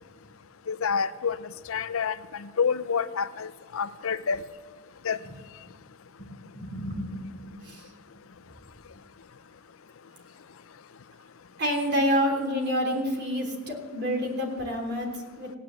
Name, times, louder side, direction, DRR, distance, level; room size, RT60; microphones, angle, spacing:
voice 1, 0.7-1.4 1.7-4.4 5.0-5.2, left 6 dB, 70° left, 14 dB, 0.6 m, -28 dB
voice 2, 6.2-7.9 11.6-15.6, equal, 55° right, 1 dB, 3.3 m, -29 dB
16.0 x 10.0 x 7.7 m, 1.4 s
head